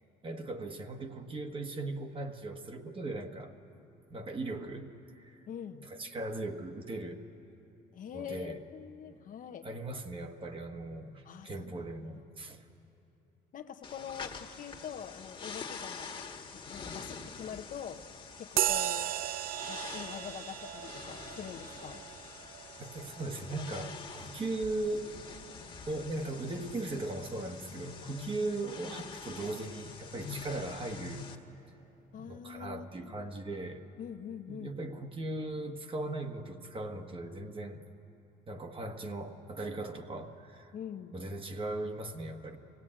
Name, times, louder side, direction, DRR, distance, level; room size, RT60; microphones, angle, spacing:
voice 1, 0.2-3.5 4.1-4.9 5.2-5.4 5.8-7.2 8.1-8.6 9.6-12.6 22.8-25.1 25.9-31.3 32.1-33.8 34.5-37.8 38.5-40.7 41.1-42.6, right 2 dB, 30° right, 6 dB, 1.4 m, -38 dB
voice 2, 5.5-5.9 7.9-9.7 11.2-11.9 12.1-12.2 13.5-16.2 16.5-18.0 18.4-19.1 19.7-22.0 28.4-28.5 32.1-33.1 34.0-34.7 40.7-41.2, left 8 dB, 55° left, 8 dB, 0.9 m, -44 dB
sound 1, 13.8-31.4, left 5 dB, 30° left, 1.6 m, -46 dB
sound 2, 18.6-26.5, right 12 dB, 60° right, 0.5 m, -37 dB
23.5 x 17.0 x 8.8 m, 2.9 s
cardioid pair, 110°, 17 cm